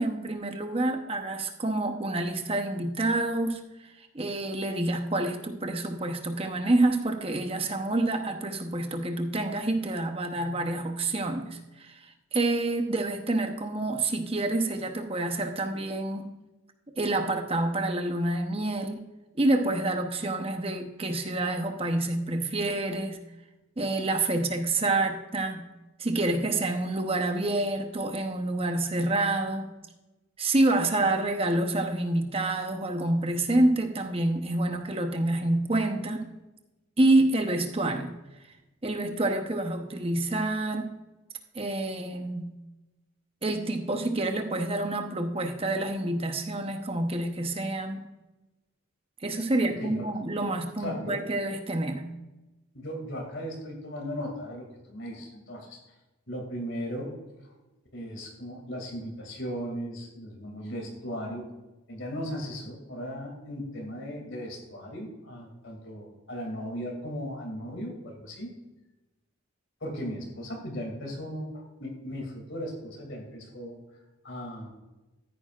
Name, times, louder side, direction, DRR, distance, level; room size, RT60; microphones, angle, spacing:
voice 1, 0.0-3.6 4.1-16.3 17.0-19.0 19.4-23.2 23.8-25.7 26.0-29.7 30.4-36.3 37.0-38.1 38.8-40.9 41.5-42.5 43.4-48.1 49.2-52.1, right 2 dB, 30° right, 5 dB, 0.9 m, -28 dB
voice 2, 50.8-51.2 52.7-55.8 56.3-57.1 57.9-61.5 61.9-68.5 69.8-73.8 74.2-74.7, equal, 65° left, 1 dB, 2.5 m, -37 dB
14.5 x 9.2 x 2.5 m, 1.1 s
head